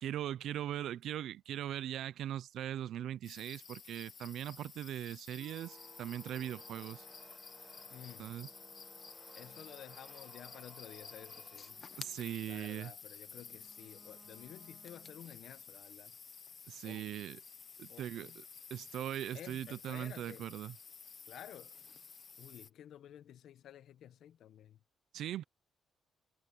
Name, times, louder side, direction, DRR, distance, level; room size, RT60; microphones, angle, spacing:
voice 1, 0.0-7.1 8.2-8.5 12.0-12.9 16.7-17.4 17.8-18.4 18.7-20.7 25.1-25.4, right 11 dB, 75° right, 0.6 m, -40 dB
sound 1, 3.2-22.7, left 6 dB, 45° left, 1.2 m, -52 dB
sound 2, 5.3-15.6, right 4 dB, 30° right, 1.0 m, -61 dB
voice 2, 7.9-8.4 9.3-11.8 12.5-16.2 16.8-17.2 17.9-18.4 19.3-20.5 21.2-21.8 22.4-24.8, left 11 dB, 75° left, 1.0 m, -53 dB
cardioid pair, 90°, 0 cm